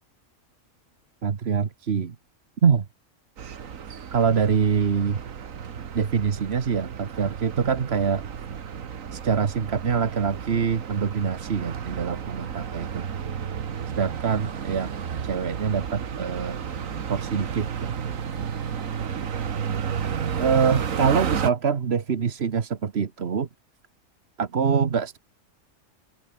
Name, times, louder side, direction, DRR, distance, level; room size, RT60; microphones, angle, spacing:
voice 1, 1.2-2.2 2.6-2.9 4.1-5.2 5.9-8.3 9.1-13.0 13.9-14.9 15.3-16.6 17.1-17.9 20.4-23.5 24.4-25.2, right 6 dB, 55° right, 1.4 m, -24 dB
sound 1, 3.4-21.5, right 7 dB, 90° right, 1.7 m, -32 dB
sound 2, 14.2-20.0, left 2 dB, 45° left, 5.0 m, -52 dB
open air
omnidirectional pair, 1.4 m